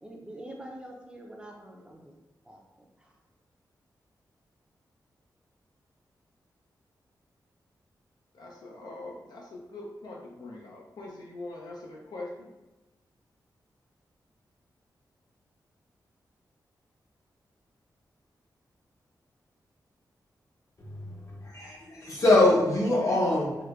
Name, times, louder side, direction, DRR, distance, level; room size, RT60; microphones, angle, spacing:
voice 1, 0.0-2.1 2.4-3.1, right 1 dB, 15° right, -1 dB, 0.5 m, -45 dB
voice 2, 8.3-12.5, left 2 dB, 70° left, -1 dB, 0.5 m, -42 dB
voice 3, 20.8-23.6, left 2 dB, 45° left, -4 dB, 1.0 m, -24 dB
4.6 x 2.2 x 2.4 m, 1.1 s
wide cardioid pair, 100°, 7 cm